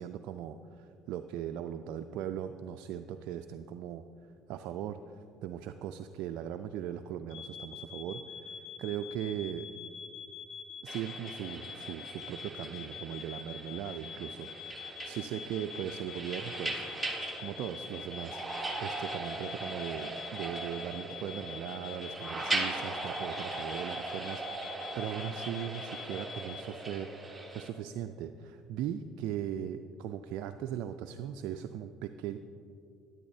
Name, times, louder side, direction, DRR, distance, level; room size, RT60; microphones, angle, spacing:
voice 1, 0.0-4.0 4.5-9.7 10.8-16.9 17.4-18.4 18.8-32.4, right 10 dB, 65° right, 7 dB, 0.3 m, -39 dB
sound 1, 7.3-26.6, left 7 dB, 75° left, 0.6 m, -45 dB
sound 2, 10.9-27.7, right 2 dB, 10° right, 1.2 m, -39 dB
12.0 x 10.5 x 2.7 m, 2.5 s
hypercardioid pair, 70°, 0 cm